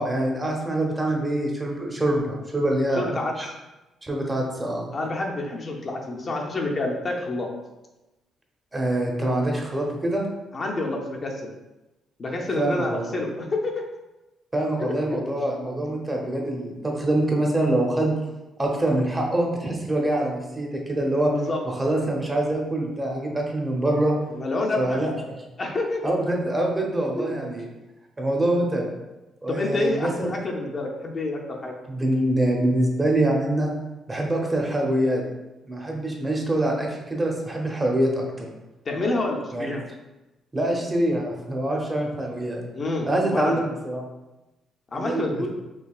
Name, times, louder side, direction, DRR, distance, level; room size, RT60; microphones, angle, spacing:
voice 1, 0.0-3.1 3.4-3.5 4.0-4.9 8.7-10.3 12.6-13.2 14.5-18.1 18.6-21.3 21.7-24.1 24.8-25.4 26.0-27.7 28.2-28.9 29.4-30.3 31.9-33.7 34.1-35.2 35.6-38.5 39.5-39.8 40.5-42.6 43.0-44.0 44.9-45.5, right 1 dB, 20° right, 0 dB, 0.7 m, -25 dB
voice 2, 2.9-3.5 4.9-7.5 10.5-11.5 12.2-13.7 21.3-21.6 24.3-25.0 25.6-26.1 27.1-27.2 29.5-31.7 38.8-39.8 42.7-43.6 44.9-45.5, left 2 dB, 40° left, 0 dB, 0.6 m, -28 dB
4.6 x 2.7 x 2.4 m, 1.0 s
cardioid pair, 90°, 0 cm